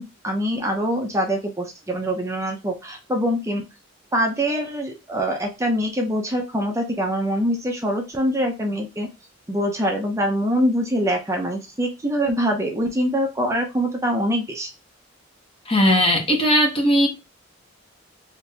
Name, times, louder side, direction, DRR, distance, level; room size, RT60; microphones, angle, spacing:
voice 1, 0.0-3.6 4.1-9.1 9.5-14.7, equal, 15° right, 0.6 m, -24 dB
voice 2, 15.7-17.1, equal, 30° left, 0.8 m, -18 dB
3.7 x 2.6 x 2.7 m
head